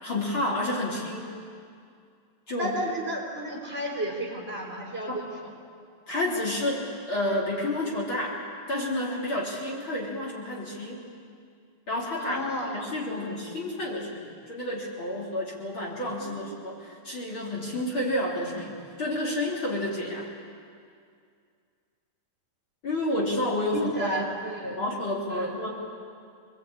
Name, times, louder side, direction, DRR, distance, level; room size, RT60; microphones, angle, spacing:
voice 1, 0.0-1.3 2.5-2.8 5.1-5.2 6.1-8.4 8.7-11.0 11.9-12.4 12.7-18.7 19.0-20.3 22.8-24.1 24.7-25.7, left 1 dB, 40° left, -4 dB, 3.9 m, -30 dB
voice 2, 2.6-5.3 12.2-13.3 16.2-16.3 23.7-24.8 25.3-25.5, right 1 dB, 20° right, -1 dB, 4.2 m, -32 dB
26.0 x 21.5 x 8.6 m, 2.3 s
omnidirectional pair, 3.3 m